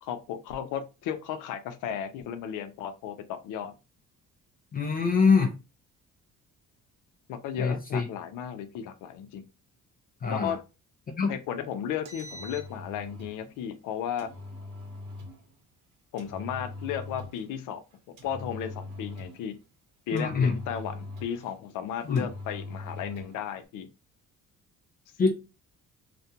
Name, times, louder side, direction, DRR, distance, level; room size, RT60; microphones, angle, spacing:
voice 1, 0.0-3.7 7.3-9.4 10.3-10.6 11.3-14.3 16.1-17.8 18.1-19.6 20.1-23.9, left 9 dB, 85° left, 0.5 m, -34 dB
voice 2, 4.7-5.5 7.6-8.0 10.2-10.6 11.2-11.4 20.1-20.5 22.1-22.3 25.2-25.3, left 5 dB, 30° left, 0.4 m, -24 dB
Engine, 12.1-13.4 14.2-15.4 16.2-17.5 18.2-19.5 20.2-21.5 22.2-23.4, left 2 dB, 75° right, 1.0 m, -41 dB
2.4 x 2.2 x 2.7 m
cardioid pair, 110°, 31 cm